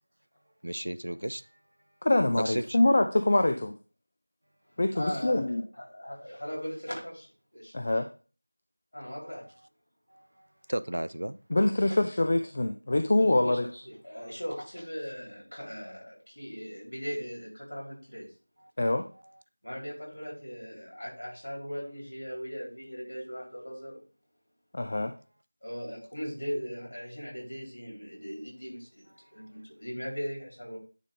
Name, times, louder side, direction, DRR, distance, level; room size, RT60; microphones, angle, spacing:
voice 1, 0.6-1.4 2.4-2.8 9.0-9.4 10.1-10.3 10.7-11.4, right 1 dB, 60° right, 0.3 m, -34 dB
voice 2, 2.0-3.7 4.8-5.6 7.7-8.1 11.5-13.7 18.8-19.0 24.7-25.1, left 2 dB, 30° left, 0.4 m, -25 dB
voice 3, 4.9-7.7 8.9-9.4 11.8-12.0 13.1-18.3 19.6-24.0 25.6-30.8, equal, 55° left, 4.0 m, -39 dB
9.7 x 3.3 x 3.7 m
figure-of-eight pair, 175°, 0 cm